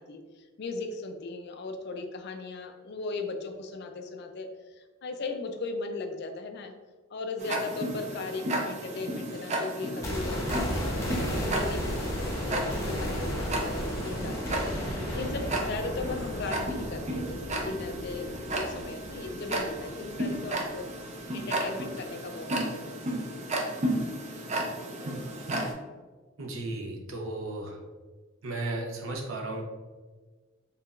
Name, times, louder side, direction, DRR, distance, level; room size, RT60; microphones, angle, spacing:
voice 1, 0.0-6.7 7.1-20.8 21.2-22.9, left 3 dB, 55° left, 5 dB, 0.4 m, -38 dB
Tick-tock, 7.4-25.7, right 1 dB, 35° right, 0.5 m, -34 dB
sound 1, 10.0-20.0 20.3-20.4, equal, 15° left, 0.8 m, -34 dB
voice 2, 26.4-27.8 28.4-29.6, right 2 dB, 75° right, 1 dB, 0.8 m, -35 dB
4.5 x 3.3 x 2.4 m, 1.3 s
head